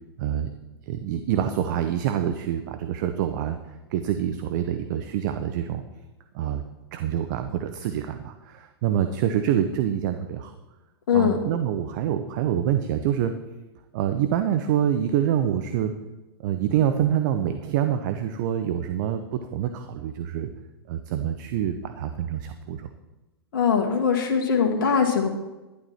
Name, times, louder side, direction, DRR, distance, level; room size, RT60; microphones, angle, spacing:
voice 1, 0.2-0.5 0.9-3.6 3.9-5.8 6.3-6.6 6.9-10.5 11.1-13.4 13.9-15.9 16.4-20.5 20.9-22.9, right 10 dB, 45° right, 8 dB, 0.8 m, -26 dB
voice 2, 11.1-11.4 23.5-25.3, left 6 dB, 55° left, 1 dB, 1.9 m, -21 dB
11.5 x 11.0 x 4.3 m, 1.1 s
figure-of-eight pair, 100°, 13 cm